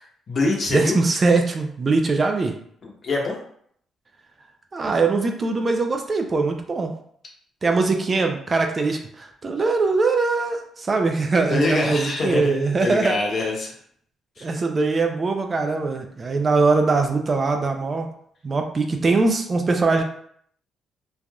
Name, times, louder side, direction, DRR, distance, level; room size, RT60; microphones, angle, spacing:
voice 1, 0.0-1.0 2.8-3.3 11.5-13.7 14.4-14.5, left 3 dB, 50° left, -1 dB, 0.9 m, -25 dB
voice 2, 0.7-2.5 4.7-6.9 7.6-13.2 14.4-18.1 18.4-20.0, right 3 dB, 35° right, 4 dB, 0.4 m, -21 dB
3.2 x 2.5 x 2.2 m, 0.64 s
cardioid pair, 90°, 0 cm